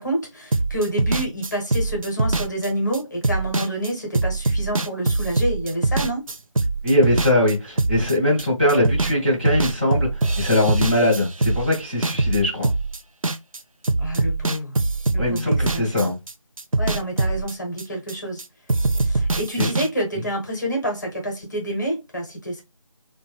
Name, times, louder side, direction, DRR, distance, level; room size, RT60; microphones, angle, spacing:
voice 1, 0.0-6.2 14.0-14.7 15.1-16.1 16.8-18.4 19.0-22.6, right 1 dB, 35° left, 0.9 m, -28 dB
sound 1, 0.5-9.2 9.5-13.6 13.8-18.4 18.7-19.9, right 3 dB, 85° right, 0.5 m, -23 dB
voice 2, 6.8-10.1 10.4-12.7 15.2-16.2 19.6-19.7, left 1 dB, 20° right, 0.8 m, -21 dB
3.1 x 2.2 x 3.3 m
figure-of-eight pair, 165°, 17 cm